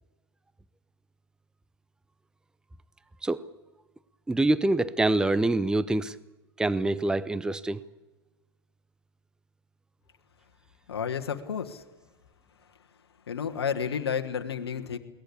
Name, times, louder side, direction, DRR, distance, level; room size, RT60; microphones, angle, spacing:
voice 1, 4.3-6.2 6.6-7.8, right 2 dB, 5° right, 17 dB, 0.7 m, -25 dB
voice 2, 10.9-11.8 12.6-12.9 13.3-15.0, left 7 dB, 80° left, 6 dB, 1.6 m, -31 dB
22.5 x 18.0 x 8.6 m, 1.1 s
hypercardioid pair, 95°, 13 cm